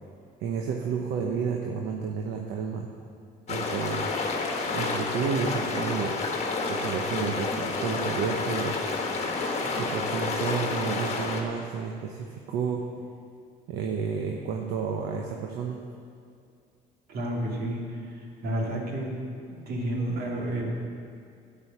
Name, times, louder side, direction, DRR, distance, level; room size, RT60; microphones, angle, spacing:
voice 1, 0.4-2.9 3.5-4.1 4.7-6.3 6.7-8.7 9.8-12.8 13.7-15.8, right 6 dB, 80° right, 1 dB, 1.0 m, -31 dB
sound 1, 3.5-11.4, left 3 dB, 40° left, 1.6 m, -29 dB
voice 2, 17.1-17.8 18.1-19.1 19.5-20.7, right 1 dB, 65° right, -2 dB, 2.5 m, -31 dB
12.5 x 5.5 x 8.1 m, 2.3 s
cardioid pair, 110°, 17 cm